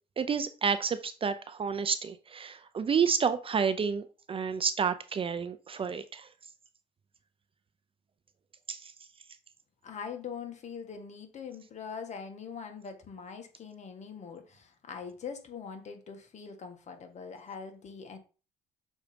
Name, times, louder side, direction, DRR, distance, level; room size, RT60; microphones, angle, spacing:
voice 1, 0.2-6.3 8.7-8.9, right 6 dB, 30° right, 0.6 m, -30 dB
voice 2, 9.8-18.2, left 6 dB, 40° left, 1.6 m, -42 dB
6.2 x 4.2 x 5.1 m
cardioid pair, 105°, 17 cm